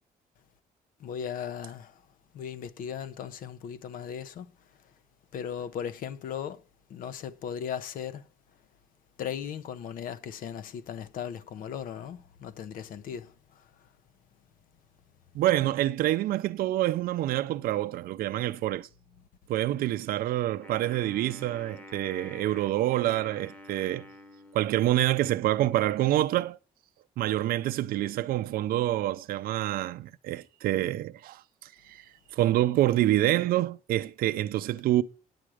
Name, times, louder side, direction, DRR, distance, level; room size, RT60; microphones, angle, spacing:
voice 1, 1.0-2.0 2.3-4.9 5.3-6.6 6.9-8.3 9.2-13.9, left 8 dB, 70° left, 0.7 m, -37 dB
voice 2, 15.3-18.9 19.5-24.0 24.5-26.6 27.2-32.1 32.3-35.0, right 14 dB, 80° right, 0.5 m, -27 dB
Wind instrument woodwind instrument, 20.6-25.1, left 1 dB, 10° left, 0.9 m, -48 dB
9.4 x 8.8 x 4.8 m
cardioid pair, 165°, 15 cm